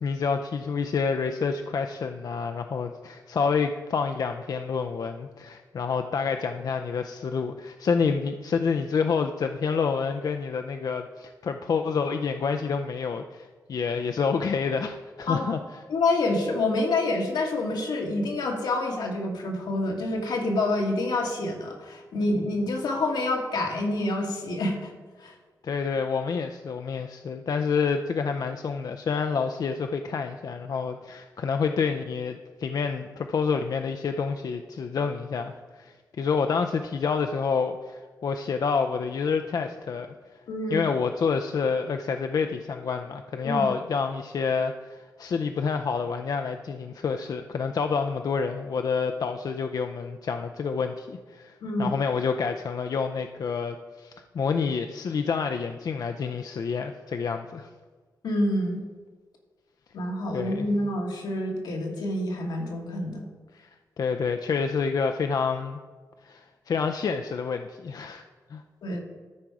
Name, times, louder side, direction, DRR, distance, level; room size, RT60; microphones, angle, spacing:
voice 1, 0.0-15.6 25.6-40.1 40.7-51.5 51.8-57.7 60.3-60.7 63.5-63.7 64.0-65.8 66.2-68.2 68.5-68.6, left 5 dB, 60° left, 6 dB, 0.4 m, -28 dB
voice 2, 15.9-24.9 25.2-25.3 40.5-40.8 43.4-43.7 51.6-51.9 58.2-58.8 59.9-63.3 68.8-69.0, left 2 dB, 85° left, 0 dB, 1.7 m, -27 dB
12.5 x 4.6 x 4.8 m, 1.4 s
cardioid pair, 80°, 7 cm